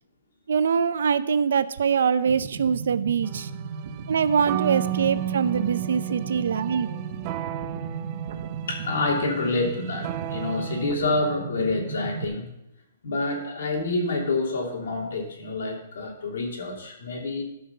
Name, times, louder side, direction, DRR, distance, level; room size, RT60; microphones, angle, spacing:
voice 1, 0.5-3.5 4.1-6.9, right 6 dB, 70° right, 14 dB, 0.6 m, -23 dB
sound 1, 2.3-12.3, right 5 dB, 50° right, 0.9 m, -36 dB
sound 2, 3.2-10.9, right 13 dB, 25° right, 0.3 m, -33 dB
voice 2, 8.7-12.5 13.0-17.4, left 3 dB, 70° left, 0 dB, 3.0 m, -27 dB
13.0 x 5.8 x 5.6 m, 0.85 s
hypercardioid pair, 170°, 0 cm